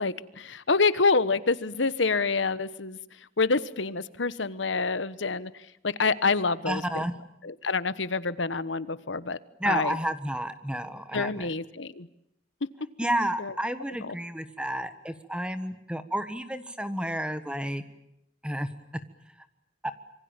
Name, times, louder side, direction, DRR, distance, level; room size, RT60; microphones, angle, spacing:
voice 1, 0.0-3.0 3.4-5.5 5.8-7.0 7.4-9.4 9.7-10.0 11.1-12.1 13.4-13.5 14.0-14.2, left 4 dB, 90° left, 16 dB, 1.2 m, -27 dB
voice 2, 6.7-7.1 9.6-11.5 13.0-17.8 18.4-18.7 19.8-19.9, right 1 dB, 5° right, 11 dB, 1.4 m, -31 dB
27.0 x 24.0 x 8.9 m, 0.77 s
head